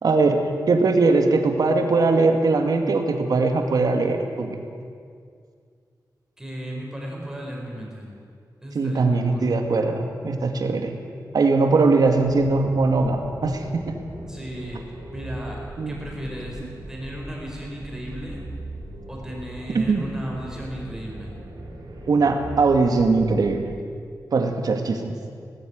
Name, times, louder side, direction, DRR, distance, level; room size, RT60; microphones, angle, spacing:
voice 1, 0.0-4.6 8.7-10.9 11.3-13.9 15.8-16.0 19.7-20.0 22.1-23.6 24.3-25.1, right 3 dB, 70° right, 4 dB, 2.3 m, -20 dB
voice 2, 6.4-8.1 8.6-9.5 14.3-16.6 16.9-18.4 19.1-21.3, equal, 10° right, -2 dB, 4.5 m, -35 dB
sound 1, 12.1-23.6, right 1 dB, 85° right, 4.9 m, -39 dB
19.0 x 15.5 x 9.6 m, 2.2 s
wide cardioid pair, 175°, 7 cm